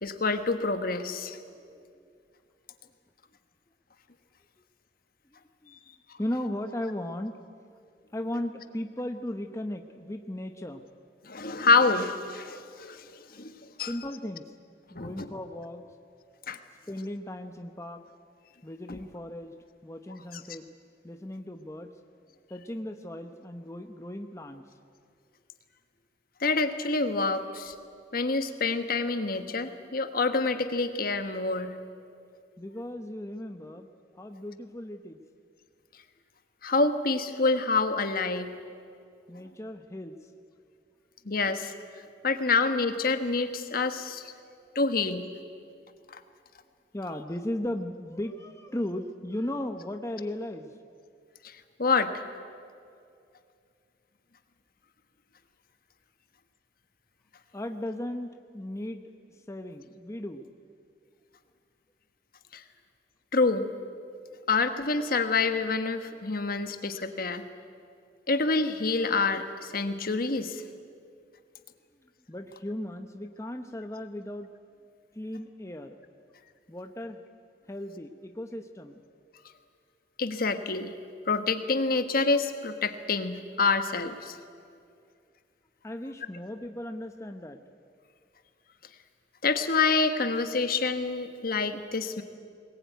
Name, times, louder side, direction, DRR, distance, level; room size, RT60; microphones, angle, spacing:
voice 1, 0.0-1.4 11.2-13.5 13.8-13.9 14.9-15.3 16.5-16.6 18.9-19.0 20.3-20.4 26.4-27.7 28.1-31.7 36.6-38.5 41.2-41.7 42.2-44.3 44.7-45.3 51.4-51.5 51.8-52.2 62.5-62.6 63.3-63.7 64.5-67.4 68.3-70.6 80.2-80.9 81.3-84.4 89.4-92.2, left 3 dB, 55° left, 8 dB, 1.4 m, -27 dB
voice 2, 6.2-7.3 8.1-10.8 13.9-14.5 14.9-15.8 16.9-18.0 18.6-19.5 19.8-20.7 21.0-21.9 22.5-24.6 32.6-33.9 34.1-35.2 39.3-40.2 46.9-50.7 57.5-59.0 59.5-60.4 72.3-74.5 75.1-76.0 76.7-77.2 77.7-79.0 85.8-87.6, left 1 dB, 15° left, 5 dB, 0.9 m, -36 dB
22.0 x 19.5 x 9.4 m, 2.3 s
head